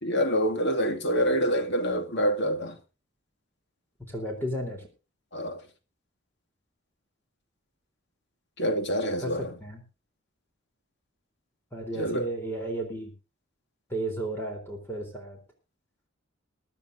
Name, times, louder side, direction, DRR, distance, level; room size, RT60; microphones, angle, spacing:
voice 1, 0.0-2.8 5.3-5.6 8.6-9.5 12.0-12.3, equal, 60° left, 2.4 m, -26 dB
voice 2, 4.1-4.9 9.2-9.8 11.7-13.1 13.9-15.4, right 1 dB, 10° left, 3.7 m, -33 dB
22.5 x 12.5 x 2.7 m
head